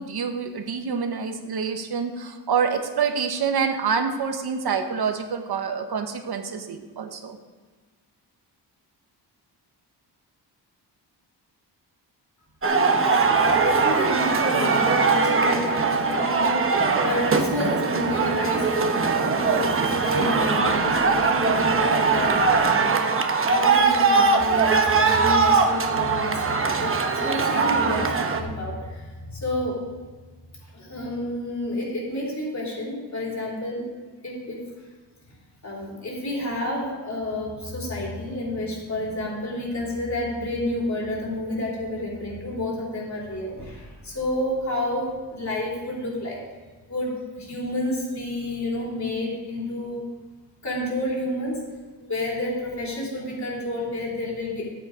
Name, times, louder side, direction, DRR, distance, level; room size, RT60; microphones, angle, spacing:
voice 1, 0.0-7.4, right 6 dB, 60° right, 5 dB, 1.1 m, -27 dB
sound 1, 12.6-28.4, right 4 dB, 30° right, 0.9 m, -21 dB
voice 2, 12.9-29.0 29.3-29.8 30.7-33.9 34.2-34.6 35.6-46.4 46.9-50.0 50.6-51.6 52.0-54.7, left 1 dB, 40° left, -4 dB, 4.1 m, -30 dB
12.0 x 8.4 x 5.0 m, 1.4 s
wide cardioid pair, 130°, 42 cm